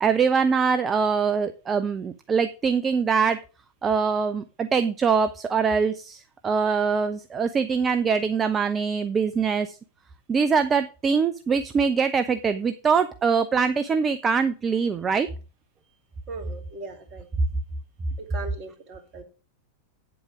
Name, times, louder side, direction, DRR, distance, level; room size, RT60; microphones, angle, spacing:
voice 1, 0.0-3.4 3.8-9.8 10.3-15.3, right 5 dB, 20° right, 10 dB, 0.7 m, -23 dB
voice 2, 16.3-17.3 18.2-19.2, right 3 dB, 40° right, 6 dB, 2.6 m, -39 dB
9.1 x 7.9 x 4.9 m, 0.33 s
figure-of-eight pair, 90°, 0 cm